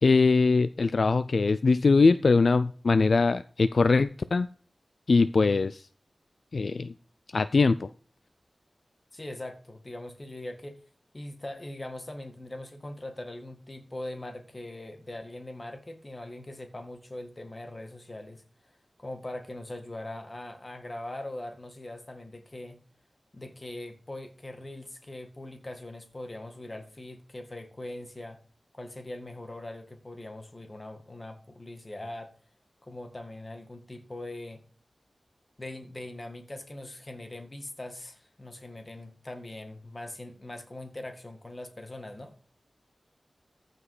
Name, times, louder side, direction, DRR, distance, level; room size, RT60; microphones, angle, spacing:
voice 1, 0.0-4.5 5.1-5.8 6.5-6.9 7.3-7.9, left 4 dB, 70° left, 13 dB, 0.4 m, -22 dB
voice 2, 9.1-10.8 11.1-18.4 19.0-22.8 23.3-28.4 28.7-32.3 32.8-34.6 35.6-42.3, left 1 dB, 30° left, 6 dB, 1.9 m, -41 dB
14.5 x 5.2 x 4.8 m, 0.44 s
wide cardioid pair, 95°, 0 cm